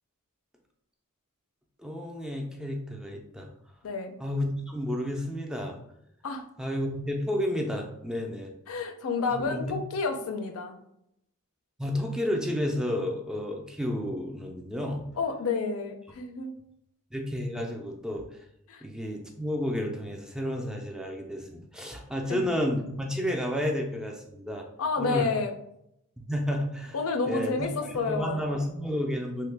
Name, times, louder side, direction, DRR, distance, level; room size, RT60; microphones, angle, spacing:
voice 1, 1.8-3.5 4.2-5.8 6.6-8.5 9.3-9.8 11.8-15.0 17.1-18.2 18.8-24.7 25.0-25.3 26.2-27.0 27.3-27.7 28.1-29.5, left 1 dB, 5° right, 1 dB, 0.3 m, -31 dB
voice 2, 3.8-4.1 6.2-6.4 8.7-10.8 15.1-16.5 18.7-18.8 22.3-22.5 24.8-25.5 26.9-28.5, left 4 dB, 65° left, 5 dB, 0.4 m, -30 dB
3.1 x 2.1 x 3.3 m, 0.77 s
head